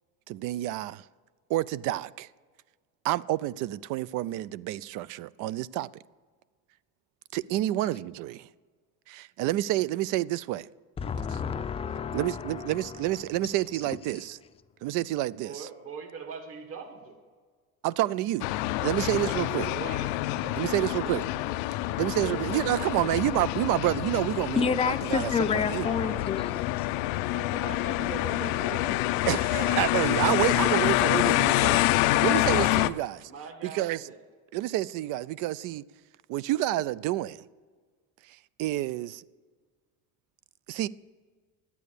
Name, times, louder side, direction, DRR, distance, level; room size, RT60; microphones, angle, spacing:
voice 1, 0.3-1.0 1.5-2.3 3.0-5.9 7.3-8.5 9.1-10.7 12.1-14.4 14.8-15.7 17.8-18.5 18.8-19.7 20.5-21.2 22.0-25.9 29.3-33.3 33.6-34.0 34.5-35.8 36.3-37.4 38.6-39.2 40.7-40.9, right 15 dB, 65° right, 0.4 m, -29 dB
voice 2, 11.0-13.1 24.6-26.5 26.8-26.9, left 6 dB, 15° left, 0.5 m, -29 dB
voice 3, 15.4-17.2 19.3-21.3 21.9-23.2 24.5-24.7 25.8-26.3 27.3-29.1 33.2-34.2, right 5 dB, 40° right, 1.7 m, -41 dB
sound 1, 18.4-32.9, left 17 dB, 85° left, 0.5 m, -27 dB
11.0 x 8.4 x 6.9 m
cardioid pair, 130°, 34 cm